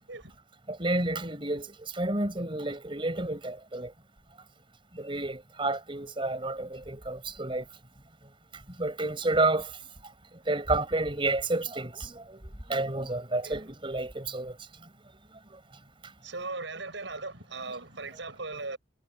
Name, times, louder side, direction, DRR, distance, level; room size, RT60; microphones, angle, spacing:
voice 1, 0.7-3.9 4.9-7.6 8.8-9.7 10.4-14.6 15.5-15.6, right 2 dB, 25° right, 4.8 m, -30 dB
voice 2, 16.2-18.8, right 3 dB, 75° right, 6.5 m, -38 dB
head